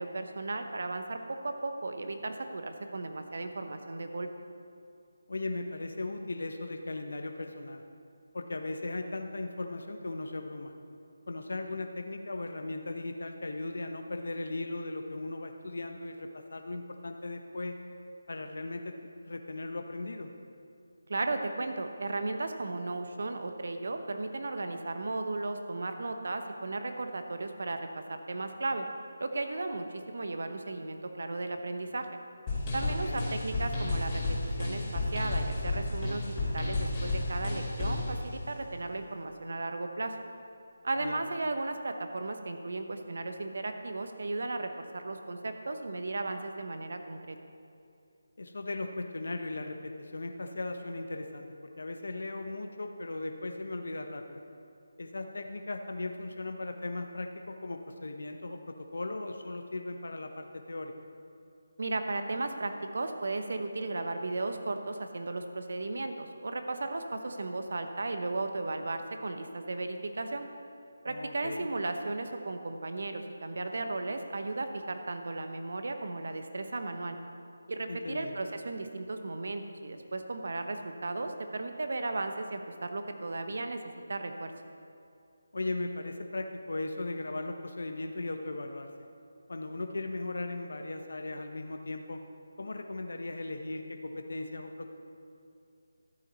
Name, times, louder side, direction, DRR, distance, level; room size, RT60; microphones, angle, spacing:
voice 1, 0.0-4.3 21.1-28.9 29.2-32.1 32.7-34.2 34.6-40.1 40.8-47.4 61.8-70.4 71.0-77.2 77.7-83.8 84.1-84.5, right 2 dB, 65° right, 6 dB, 1.0 m, -35 dB
voice 2, 5.3-7.8 8.3-10.7 11.3-17.7 18.3-18.9 19.2-20.3 32.8-33.2 41.0-41.2 48.4-51.5 51.8-54.4 55.0-60.9 71.1-71.7 77.9-78.4 85.5-88.9 89.5-92.2 92.6-94.9, left 2 dB, 70° left, 5 dB, 0.8 m, -37 dB
sound 1, 32.5-38.1, left 2 dB, 20° left, 2.3 m, -32 dB
12.5 x 8.6 x 4.1 m, 2.5 s
figure-of-eight pair, 165°, 0 cm